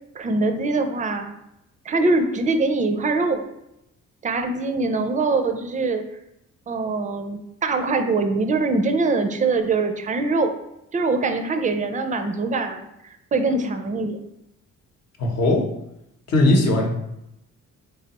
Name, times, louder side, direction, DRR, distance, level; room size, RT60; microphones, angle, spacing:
voice 1, 0.2-1.3 1.9-3.4 4.2-6.0 6.7-10.5 10.9-14.2, right 3 dB, 25° right, 7 dB, 0.4 m, -23 dB
voice 2, 15.2-15.6 16.3-16.9, left 2 dB, 60° left, 1 dB, 0.9 m, -18 dB
3.3 x 3.3 x 2.9 m, 0.84 s
cardioid pair, 90°, 30 cm